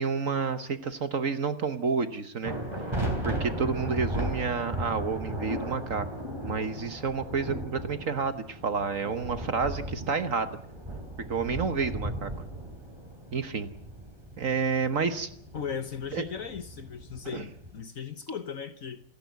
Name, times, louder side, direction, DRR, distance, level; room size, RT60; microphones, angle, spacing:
voice 1, 0.0-2.5 3.2-6.1 6.4-10.6 11.3-12.3 13.3-13.7 14.4-15.3 16.1-16.2 17.3-17.4, right 5 dB, 50° right, 11 dB, 1.4 m, -29 dB
sound 1, 2.4-17.8, right 1 dB, 15° right, 3.6 m, -36 dB
voice 2, 15.5-19.0, left 7 dB, 50° left, 12 dB, 1.3 m, -37 dB
28.0 x 11.5 x 9.4 m, 0.68 s
omnidirectional pair, 2.0 m